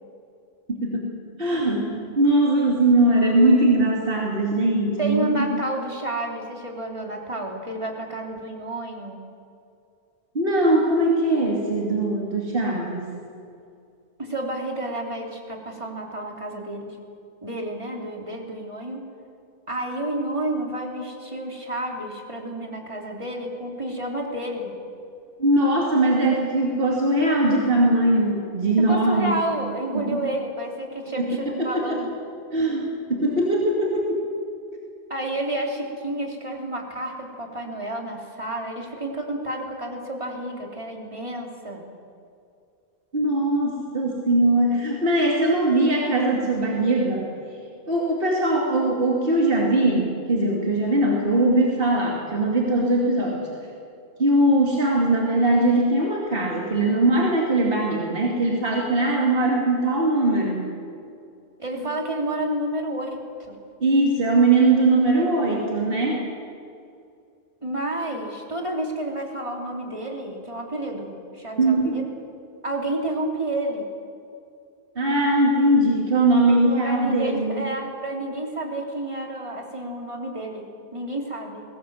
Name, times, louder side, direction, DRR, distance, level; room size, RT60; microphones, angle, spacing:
voice 1, 0.7-1.1 1.4-5.5 10.3-13.1 25.4-29.4 29.9-30.2 31.2-32.0 32.5-34.2 43.1-47.3 47.8-53.5 54.2-60.7 61.8-61.9 63.8-66.2 71.6-72.0 75.0-77.6, right 2 dB, 60° right, -2 dB, 2.8 m, -21 dB
voice 2, 5.0-9.2 14.2-16.9 17.4-19.0 19.7-24.8 28.8-32.1 35.1-41.8 61.6-63.2 63.5-63.6 67.6-72.1 72.6-73.9 76.8-81.6, right 1 dB, 30° right, 1 dB, 3.3 m, -30 dB
22.0 x 18.5 x 7.9 m, 2.4 s
omnidirectional pair, 1.1 m